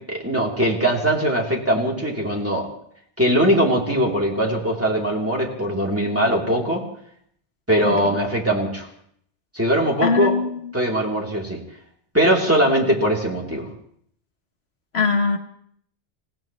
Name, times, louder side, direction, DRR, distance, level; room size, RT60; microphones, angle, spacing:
voice 1, 0.1-2.7 3.2-6.8 7.7-8.9 9.5-10.4 10.7-11.6 12.1-13.7, right 1 dB, 10° right, -2 dB, 3.1 m, -21 dB
voice 2, 10.0-10.7 14.9-15.4, left 4 dB, 70° left, 6 dB, 1.3 m, -22 dB
28.5 x 16.5 x 3.1 m, 0.65 s
omnidirectional pair, 1.1 m